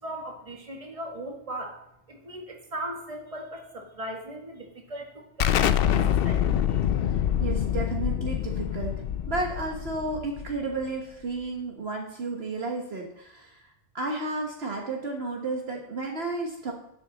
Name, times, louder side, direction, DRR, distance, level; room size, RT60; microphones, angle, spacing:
voice 1, 0.0-1.8 2.1-6.6, right 1 dB, 30° right, 2 dB, 1.7 m, -38 dB
Explosion, 5.4-10.8, left 10 dB, 60° left, 0.7 m, -26 dB
voice 2, 7.1-16.7, right 3 dB, 60° right, 1 dB, 1.5 m, -33 dB
10.5 x 8.0 x 4.1 m, 0.76 s
omnidirectional pair, 1.2 m